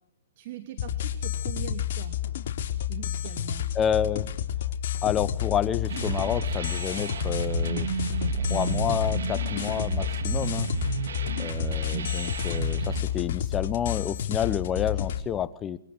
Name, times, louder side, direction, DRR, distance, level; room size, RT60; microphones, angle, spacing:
voice 1, 0.4-2.2 2.9-3.6, right 12 dB, 50° right, 9 dB, 3.0 m, -41 dB
sound 1, 0.8-15.2, left 10 dB, 55° left, 4.2 m, -30 dB
voice 2, 3.7-4.3 5.0-7.9 8.3-10.7 11.4-15.8, left 9 dB, 20° left, 16 dB, 1.1 m, -29 dB
sound 2, 5.9-13.0, right 6 dB, 85° right, 3.6 m, -32 dB
28.5 x 25.0 x 8.1 m, 0.70 s
hypercardioid pair, 150°, 0 cm